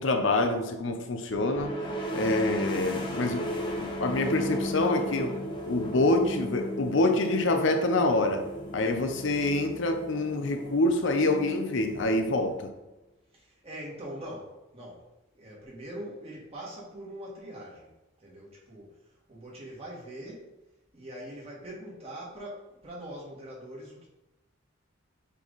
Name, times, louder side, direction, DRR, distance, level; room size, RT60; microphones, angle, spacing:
voice 1, 0.0-1.7 2.1-5.4 5.6-8.4 8.7-12.7, left 2 dB, 65° left, 6 dB, 0.7 m, -26 dB
sound 1, 1.3-12.9, equal, 25° left, 0.9 m, -36 dB
voice 2, 13.3-15.1 15.3-17.9 18.2-20.5 20.9-24.1, right 1 dB, 30° right, -5 dB, 1.9 m, -43 dB
7.5 x 3.5 x 4.0 m, 0.96 s
head